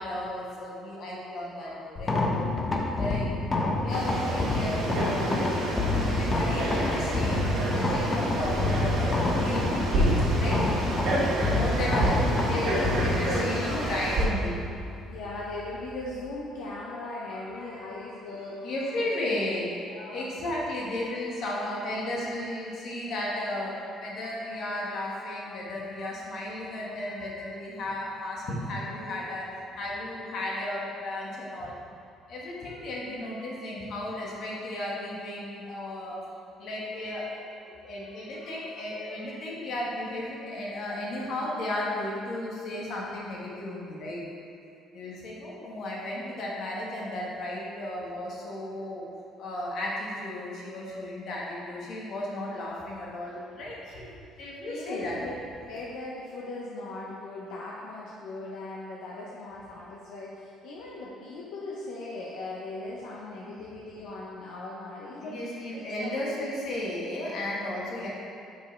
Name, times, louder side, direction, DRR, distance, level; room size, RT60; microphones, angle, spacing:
voice 1, 0.0-2.2 3.0-3.3 3.8-10.7 11.4-14.9 17.3-17.8 18.3-19.7 20.0-31.7 32.3-36.2 36.6-44.2 44.9-49.0 49.4-55.4 63.4-63.6 65.2-68.1, left 1 dB, 60° left, -4 dB, 1.5 m, -34 dB
sound 1, 2.0-16.2, left 2 dB, 25° left, 0.7 m, -28 dB
Frog, 3.9-14.3, right 2 dB, 65° right, 1.4 m, -29 dB
voice 2, 7.3-7.6 11.6-12.1 12.4-12.9 13.1-13.9 15.1-18.7 19.0-19.4 19.9-20.3 54.7-55.3 55.6-66.1, left 2 dB, 80° left, -5 dB, 0.8 m, -38 dB
5.4 x 5.2 x 4.4 m, 2.5 s
cardioid pair, 130°, 0 cm